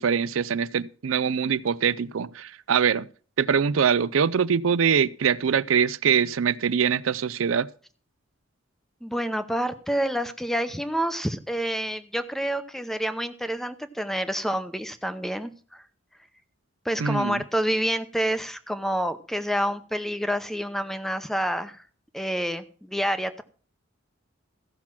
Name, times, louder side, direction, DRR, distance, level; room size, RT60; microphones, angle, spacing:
voice 1, 0.0-3.1 3.4-7.7 17.0-17.4, right 7 dB, 80° right, 0.5 m, -23 dB
voice 2, 9.0-15.8 16.8-21.8 22.1-23.4, equal, ahead, 0.7 m, -28 dB
14.5 x 5.9 x 6.0 m
head